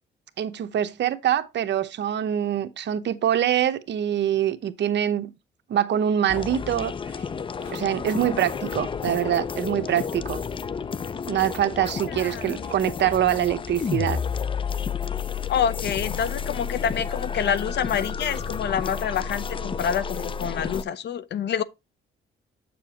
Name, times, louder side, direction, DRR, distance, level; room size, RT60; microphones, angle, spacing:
voice 1, 0.4-5.3 5.7-6.9 7.7-10.4 11.3-14.2, right 10 dB, 60° right, 0.9 m, -24 dB
sound 1, 6.3-20.8, left 6 dB, 25° left, 0.4 m, -31 dB
sound 2, 7.6-7.9 9.9-10.2 12.6-12.9, left 2 dB, 85° left, 5.5 m, -46 dB
voice 2, 12.1-12.7 15.5-21.6, left 8 dB, 60° left, 0.7 m, -27 dB
7.7 x 6.9 x 2.9 m
cardioid pair, 90°, 20 cm